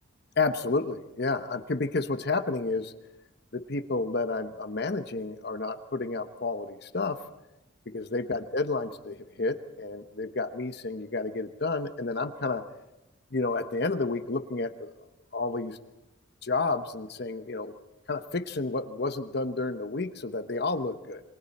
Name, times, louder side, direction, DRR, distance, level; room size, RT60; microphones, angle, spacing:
voice 1, 0.4-2.9 3.5-7.2 7.9-12.6 13.3-14.9 15.3-15.8 16.4-17.7 18.1-21.2, left 3 dB, 50° left, 9 dB, 0.9 m, -30 dB
28.0 x 24.0 x 4.2 m, 0.97 s
head